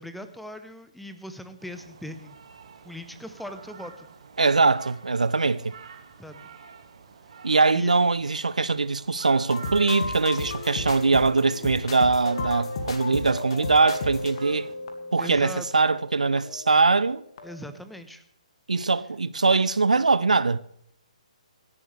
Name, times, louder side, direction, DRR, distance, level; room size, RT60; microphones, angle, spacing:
voice 1, 0.0-2.4 2.8-4.1 6.2-6.4 7.7-7.9 15.2-15.7 17.4-18.2, left 1 dB, ahead, 1.0 m, -40 dB
sound 1, 1.6-14.7, right 6 dB, 50° right, 2.0 m, -48 dB
voice 2, 4.4-5.7 7.4-14.7 15.1-17.2 18.7-20.6, right 3 dB, 70° right, 0.6 m, -22 dB
sound 2, 9.4-17.1 17.4-17.7, left 3 dB, 45° left, 2.3 m, -35 dB
26.0 x 11.0 x 3.4 m
figure-of-eight pair, 130°, 4 cm